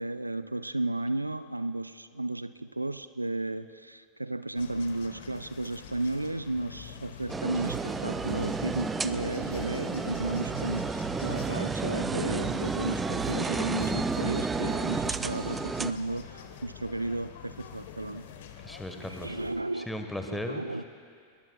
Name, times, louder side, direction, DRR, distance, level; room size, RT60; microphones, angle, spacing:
voice 1, 0.0-18.3 19.1-19.9 20.3-20.8, right 2 dB, 85° right, 14 dB, 0.3 m, -34 dB
sound 1, 4.6-19.6, left 8 dB, 55° left, 1.1 m, -46 dB
sound 2, 7.3-15.9, right 4 dB, 15° right, 0.4 m, -32 dB
sound 3, 7.5-16.4, right 7 dB, 50° right, 1.7 m, -40 dB
voice 2, 18.6-19.4 19.7-20.6, left 1 dB, 5° left, 5 dB, 1.3 m, -36 dB
22.5 x 21.0 x 2.3 m, 2.2 s
figure-of-eight pair, 90°, 0 cm